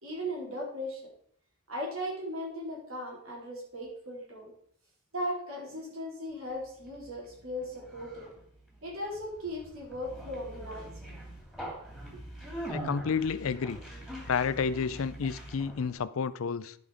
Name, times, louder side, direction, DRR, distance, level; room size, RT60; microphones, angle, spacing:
voice 1, 0.0-1.0 1.7-4.5 5.1-8.3 8.8-10.9 12.1-12.2, equal, 70° right, 3.9 m, -37 dB
Conversation, 6.5-16.0, right 1 dB, ahead, 2.6 m, -43 dB
voice 2, 12.7-13.8 14.3-16.8, left 6 dB, 70° left, 0.5 m, -30 dB
11.0 x 5.4 x 4.9 m
head